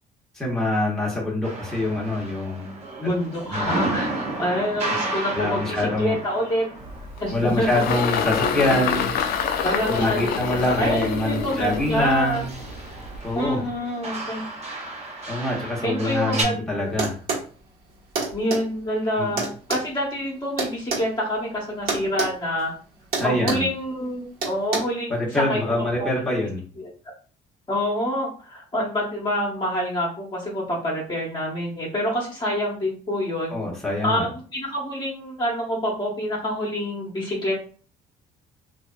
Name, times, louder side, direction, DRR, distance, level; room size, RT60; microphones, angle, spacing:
voice 1, 0.3-2.7 3.4-3.7 5.3-6.2 7.3-9.1 9.9-12.5 13.2-13.6 15.3-17.2 19.2-19.3 23.2-23.7 25.1-26.6 33.5-34.3, left 1 dB, 5° left, -4 dB, 1.0 m, -25 dB
sound 1, 1.4-9.5 9.8-16.4, right 2 dB, 40° right, 0.8 m, -33 dB
voice 2, 3.0-6.7 7.2-7.7 9.6-12.4 13.3-14.4 15.8-17.0 18.3-22.7 23.2-26.5 26.7-26.9 27.7-33.6 34.0-37.5, equal, 25° left, -3 dB, 1.0 m, -27 dB
Engine, 6.8-13.4, left 6 dB, 65° left, 0.4 m, -27 dB
sound 2, 17.0-17.5 18.2-18.6 19.4-21.1 21.9-22.3 22.6-22.8 23.1-23.7 24.4-24.8, right 4 dB, 60° right, 1.2 m, -26 dB
2.7 x 2.5 x 2.2 m, 0.40 s
cardioid pair, 110°, 17 cm